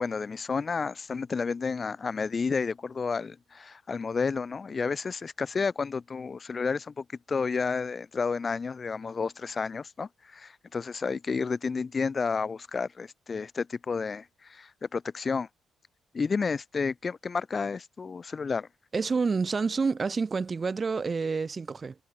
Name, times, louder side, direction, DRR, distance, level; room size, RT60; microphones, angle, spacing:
voice 1, 0.0-15.5 16.1-18.7, left 5 dB, 35° left, 5.4 m, -31 dB
voice 2, 18.9-21.9, right 4 dB, 35° right, 2.7 m, -28 dB
cardioid pair, 90°, 0 cm